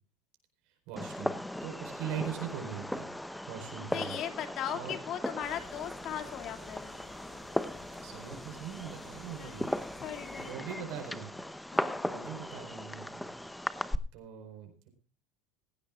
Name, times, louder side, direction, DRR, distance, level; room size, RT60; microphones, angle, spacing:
voice 1, 0.9-1.3 1.6-3.1 3.5-4.2 4.7-4.9 8.0-9.7 10.4-11.3 12.0-13.3 14.1-14.9, right 9 dB, 60° right, 5 dB, 4.6 m, -41 dB
Fireworks, 1.0-14.0, left 1 dB, 5° left, 0.8 m, -38 dB
voice 2, 3.7-6.9 9.4-10.5 10.8-10.9 11.7-12.0, left 10 dB, 50° left, 7 dB, 2.5 m, -39 dB
sound 1, 5.4-10.5, left 3 dB, 25° left, 6.1 m, -54 dB
18.0 x 16.0 x 2.4 m, 0.36 s
hypercardioid pair, 90°, 0 cm